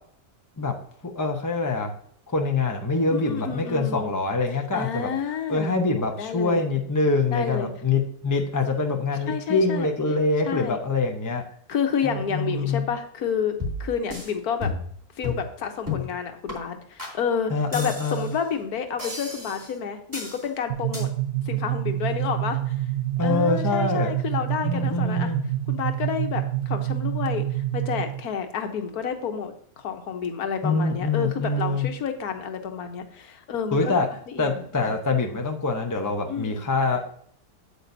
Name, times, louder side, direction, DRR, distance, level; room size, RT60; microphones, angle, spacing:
voice 1, 1.0-1.9 2.3-5.1 5.5-11.4 12.0-12.9 17.5-18.3 23.2-24.1 24.6-25.5 30.6-31.9 33.7-34.1 34.4-37.1, left 3 dB, 20° left, 3 dB, 0.6 m, -25 dB
voice 2, 3.1-4.1 4.7-5.7 6.2-6.6 7.3-7.7 9.2-9.9 10.5-10.8 11.7-13.5 13.8-14.7 15.2-21.1 21.5-22.7 23.2-25.3 25.7-35.0 36.3-36.6, left 7 dB, 75° left, 6 dB, 1.5 m, -30 dB
sound 1, 13.6-14.3 14.6-15.0 15.2-15.5 15.9-16.1 16.5-16.6 17.0-17.1 17.7-18.4 19.0-19.7 20.1-20.4 20.9-21.0, left 3 dB, 10° right, 2.5 m, -32 dB
sound 2, 20.7-28.3, right 14 dB, 75° right, 1.2 m, -27 dB
8.5 x 8.3 x 2.7 m, 0.62 s
omnidirectional pair, 1.6 m